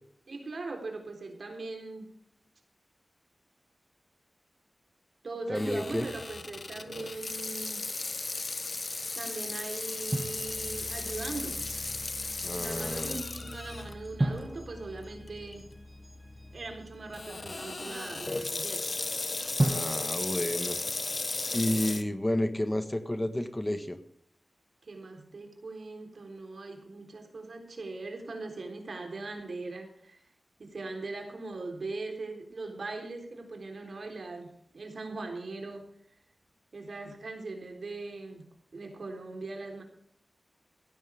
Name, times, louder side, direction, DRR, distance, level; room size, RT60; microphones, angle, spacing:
voice 1, 0.3-2.2 5.2-7.9 9.2-11.7 12.5-15.7 16.5-18.9 24.8-30.2 30.6-35.9 36.7-39.8, right 3 dB, 70° right, 4 dB, 3.9 m, -40 dB
Water tap faucet / Sink (filling or washing), 5.5-13.9 14.4-14.5 15.3-15.5 17.1-22.0, left 3 dB, 50° left, 1.2 m, -35 dB
voice 2, 5.5-6.1 12.4-13.2 19.7-20.8 21.5-24.0, left 1 dB, 15° left, 9 dB, 1.5 m, -31 dB
sound 1, 8.0-18.8, left 1 dB, 5° right, 4.9 m, -48 dB
Drum, 10.1-11.2 14.2-16.0 19.6-21.6, right 1 dB, 30° right, 1.9 m, -34 dB
16.5 x 13.0 x 3.6 m, 0.63 s
wide cardioid pair, 70°, 0 cm